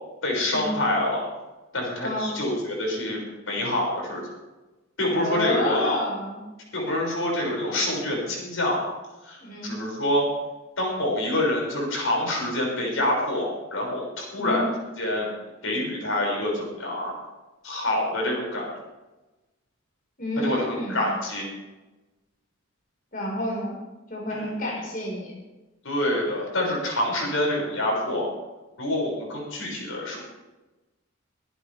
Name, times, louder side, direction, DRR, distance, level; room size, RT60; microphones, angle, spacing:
voice 1, 0.2-1.2 1.7-3.2 3.5-4.3 5.0-6.0 6.7-8.9 9.2-10.3 10.8-14.7 15.0-15.3 15.6-17.1 17.6-18.7 20.4-21.4 24.3-24.5 25.8-28.3 28.8-30.2, left 1 dB, 90° left, -2 dB, 6.5 m, -26 dB
voice 2, 5.2-6.5 9.4-9.8 14.4-14.7 20.2-21.1 23.1-23.7 24.1-25.3, left 1 dB, 45° left, -3 dB, 5.2 m, -29 dB
23.5 x 11.0 x 3.6 m, 1.1 s
head